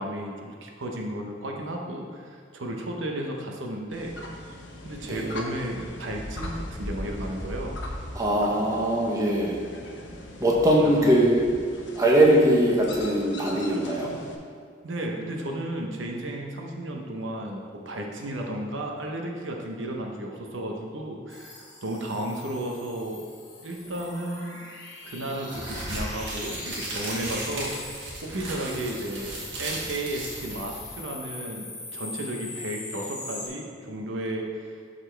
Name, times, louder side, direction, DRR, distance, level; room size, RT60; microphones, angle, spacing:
voice 1, 0.0-4.1 4.8-7.8 10.8-11.2 14.8-23.3 23.6-24.6 25.0-27.7 28.2-34.8, right 1 dB, 85° right, 1 dB, 0.9 m, -33 dB
sound 1, 3.9-14.4, left 1 dB, 70° left, 0.9 m, -39 dB
voice 2, 5.0-5.4 8.1-9.6 10.4-11.4 12.0-14.1, right 1 dB, 20° right, -3 dB, 1.0 m, -21 dB
sound 2, 21.3-28.1 28.5-33.5, left 2 dB, 20° left, 1.4 m, -41 dB
sound 3, 25.5-31.0, right 1 dB, 65° right, 1.7 m, -36 dB
12.0 x 4.2 x 3.4 m, 2.1 s
head